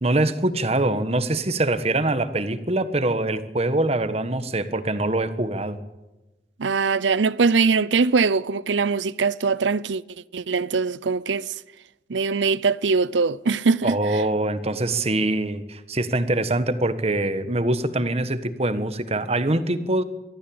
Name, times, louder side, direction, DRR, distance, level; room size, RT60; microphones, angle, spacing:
voice 1, 0.0-5.8 13.8-20.0, right 2 dB, 35° right, 1.4 m, -24 dB
voice 2, 6.6-10.0 10.3-11.5 12.1-14.0, right 4 dB, 85° right, 0.6 m, -22 dB
23.5 x 15.0 x 8.8 m
head